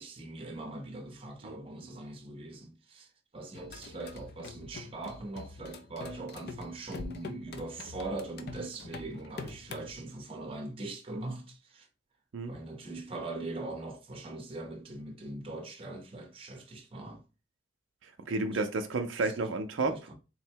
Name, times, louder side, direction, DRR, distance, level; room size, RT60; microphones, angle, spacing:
voice 1, 0.0-3.1 3.3-11.9 12.5-17.2 18.5-18.6 19.8-20.1, right 2 dB, 30° right, 0.6 m, -41 dB
sound 1, 3.5-9.9, left 3 dB, 55° left, 0.5 m, -45 dB
voice 2, 18.3-20.1, right 3 dB, 75° right, 0.5 m, -31 dB
3.7 x 2.1 x 4.4 m
head